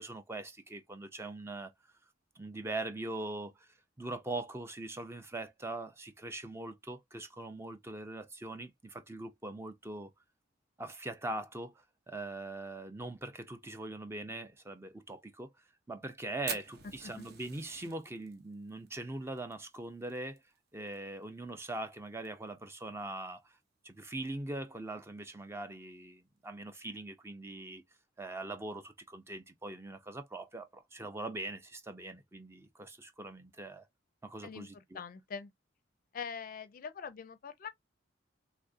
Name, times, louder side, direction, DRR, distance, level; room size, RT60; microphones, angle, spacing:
voice 1, 0.0-1.7 2.4-3.7 4.0-10.1 10.8-15.5 15.9-20.4 20.7-23.6 23.8-27.8 28.2-33.9 34.2-35.0, right 2 dB, 15° right, 0.4 m, -42 dB
Fire, 16.5-21.0 21.2-21.3 21.6-21.7 22.1-22.5 23.0-23.1 24.1-24.3, right 6 dB, 55° right, 0.8 m, -45 dB
voice 2, 34.4-35.5 36.1-37.7, left 6 dB, 45° left, 0.4 m, -43 dB
3.3 x 2.4 x 2.5 m
head